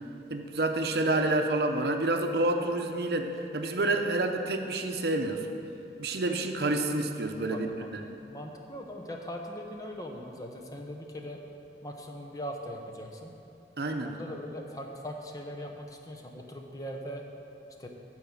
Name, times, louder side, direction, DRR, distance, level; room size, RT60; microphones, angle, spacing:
voice 1, 0.3-5.4 6.0-8.0 13.8-14.2, right 2 dB, 70° right, 5 dB, 0.7 m, -28 dB
voice 2, 8.2-11.4 11.8-13.3 14.0-17.2 17.8-17.9, equal, 20° left, 2 dB, 0.8 m, -40 dB
12.5 x 4.7 x 7.2 m, 2.7 s
head